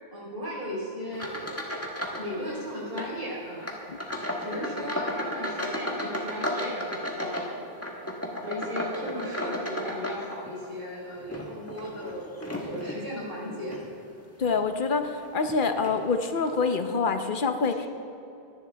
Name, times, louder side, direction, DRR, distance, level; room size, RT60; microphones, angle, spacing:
voice 1, 0.1-1.6 2.2-3.7 4.4-12.3 12.6-13.8, equal, 65° right, -6 dB, 4.3 m, -36 dB
sound 1, 1.1-2.3 2.6-3.1 3.6-10.7 11.2-13.0 13.6-13.9 14.4-14.6 15.4-15.5 15.8-16.0, left 1 dB, 15° left, 1.4 m, -34 dB
voice 2, 14.4-17.9, left 4 dB, 55° left, 7 dB, 1.0 m, -26 dB
24.0 x 11.0 x 3.4 m, 2.7 s
omnidirectional pair, 1.0 m